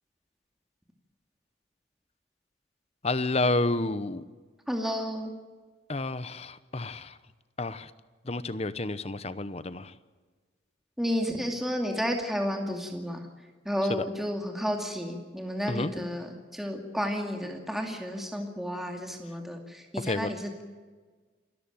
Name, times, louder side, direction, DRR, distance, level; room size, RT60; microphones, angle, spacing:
voice 1, 3.0-4.2 5.9-7.2 7.6-7.9 8.2-9.9 13.9-14.1 15.7-15.9 20.0-20.3, left 2 dB, 35° left, 14 dB, 0.9 m, -30 dB
voice 2, 4.7-5.3 11.0-13.2 13.6-20.6, equal, ahead, 2 dB, 2.4 m, -32 dB
28.0 x 14.0 x 9.2 m, 1.4 s
head